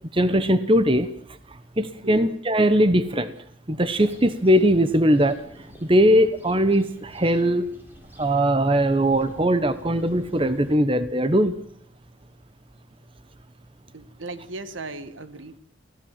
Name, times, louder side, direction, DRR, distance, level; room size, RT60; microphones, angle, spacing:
voice 1, 0.1-1.1 1.8-3.3 3.7-5.4 5.9-7.7 8.2-11.5, equal, 25° right, 12 dB, 1.0 m, -20 dB
sound 1, 3.9-10.8, equal, 10° right, 4.0 m, -48 dB
voice 2, 13.9-15.6, right 2 dB, 75° right, 12 dB, 1.6 m, -37 dB
24.5 x 16.5 x 7.5 m, 0.65 s
head